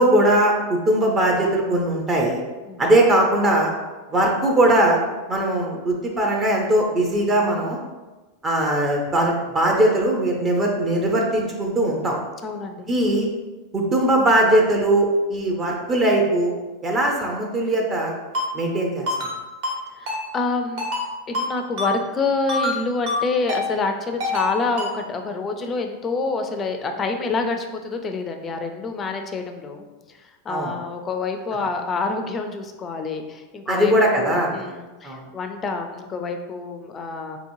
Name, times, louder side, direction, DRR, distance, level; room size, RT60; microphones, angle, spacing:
voice 1, 0.0-2.4 2.8-3.7 4.1-5.0 5.3-7.8 8.4-12.2 12.9-13.3 13.7-16.5 16.8-18.1 18.5-19.1 30.5-30.7 33.7-34.6 35.0-35.2, right 1 dB, 25° right, 0 dB, 0.6 m, -20 dB
voice 2, 12.4-12.9 19.9-20.9 21.3-29.9 30.4-37.4, left 3 dB, 25° left, 5 dB, 0.4 m, -27 dB
Ringtone, 18.3-18.5 19.1-19.3 19.6-19.8 20.1-20.2 20.8-21.0 21.3-21.5 21.8-21.9 22.5-22.8 23.1-23.2 23.5-23.6 24.2-24.5 24.8-24.9, left 2 dB, 65° right, 1.3 m, -25 dB
4.3 x 2.9 x 2.7 m, 1.2 s
supercardioid pair, 125°, 0 cm